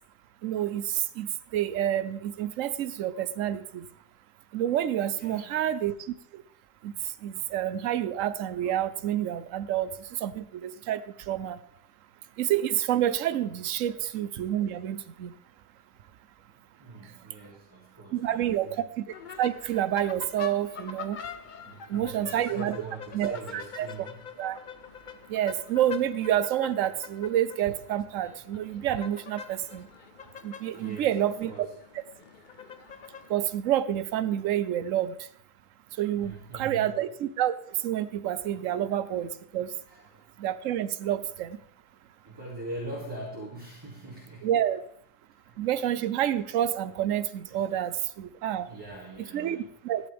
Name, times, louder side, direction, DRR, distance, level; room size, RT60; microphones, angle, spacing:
voice 1, 0.4-1.3 1.5-3.8 4.5-6.1 6.8-6.9 7.2-11.0 11.3-11.6 12.4-15.3 18.1-19.0 19.4-21.2 21.9-22.8 23.1-23.9 24.4-24.6 25.3-29.9 30.4-31.7 33.3-35.1 36.0-37.6 37.8-39.7 40.4-41.6 44.4-44.8 45.6-48.7 49.3-50.0, right 11 dB, 65° right, 14 dB, 0.9 m, -28 dB
voice 2, 5.1-5.6 7.8-7.9 10.8-10.9 13.8-13.9 16.5-18.8 21.6-24.2 30.7-31.7 33.1-33.2 36.2-36.9 38.7-38.8 39.9-40.2 42.2-44.5 45.4-45.7 47.5-47.6 48.6-49.7, right 2 dB, 15° right, -6 dB, 2.5 m, -43 dB
sound 1, 19.1-33.3, left 7 dB, 60° left, 0.5 m, -45 dB
14.0 x 11.0 x 3.5 m, 0.67 s
omnidirectional pair, 1.7 m